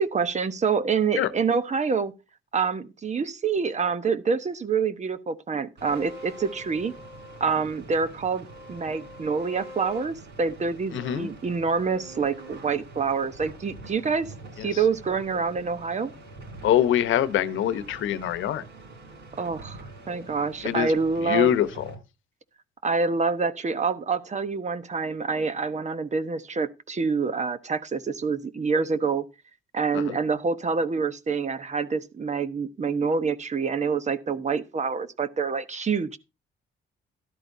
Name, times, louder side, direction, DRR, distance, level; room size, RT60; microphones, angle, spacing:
voice 1, 0.0-2.1 2.5-6.9 7.4-14.3 14.6-16.1 19.4-21.5 22.8-29.2 29.7-36.2, right 5 dB, 35° right, 1.1 m, -26 dB
sound 1, 5.8-22.0, right 1 dB, 65° right, 6.9 m, -44 dB
voice 2, 10.9-11.3 14.6-14.7 16.6-18.6 20.6-20.9 21.2-22.0 29.9-30.2, left 11 dB, 80° left, 1.0 m, -24 dB
13.0 x 12.0 x 2.7 m
cardioid pair, 90°, 20 cm